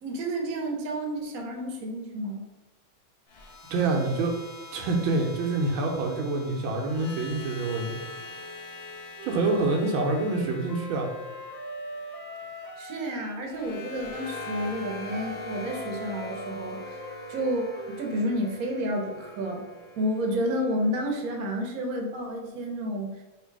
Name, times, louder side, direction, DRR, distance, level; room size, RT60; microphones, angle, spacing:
voice 1, 0.0-2.4 12.8-17.0 17.3-19.6 20.0-23.1, equal, 60° right, 1 dB, 1.0 m, -30 dB
sound 1, 3.3-21.4, left 2 dB, 75° left, 0.5 m, -44 dB
voice 2, 3.7-4.3 4.7-8.0 9.2-11.1, right 3 dB, 85° right, 1 dB, 1.5 m, -26 dB
Wind instrument woodwind instrument, 9.2-13.4 14.2-18.1, left 1 dB, 45° right, 0.4 m, -41 dB
3.6 x 2.6 x 4.6 m, 1.1 s
omnidirectional pair, 2.1 m